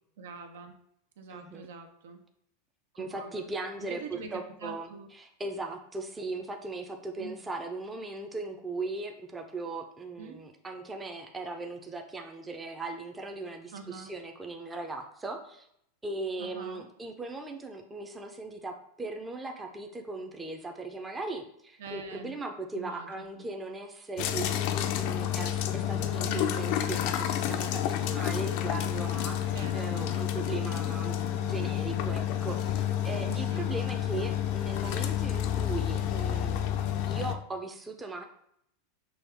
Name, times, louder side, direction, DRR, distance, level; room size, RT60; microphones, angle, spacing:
voice 1, 0.2-0.7 1.2-2.2 2.9-3.4 3.9-5.1 7.2-7.4 10.2-10.4 13.7-14.1 16.4-16.9 21.8-22.3 22.7-23.4 26.2-26.6 29.5-30.0 30.7-30.9 33.3-33.7, right 4 dB, 80° right, 5 dB, 0.7 m, -44 dB
voice 2, 1.3-1.7 3.0-15.7 16.0-36.7 37.1-38.2, right 3 dB, 10° right, 3 dB, 0.5 m, -38 dB
sound 1, 24.2-37.3, left 10 dB, 55° left, 0.4 m, -30 dB
6.1 x 2.3 x 3.4 m, 0.71 s
supercardioid pair, 135°, 0 cm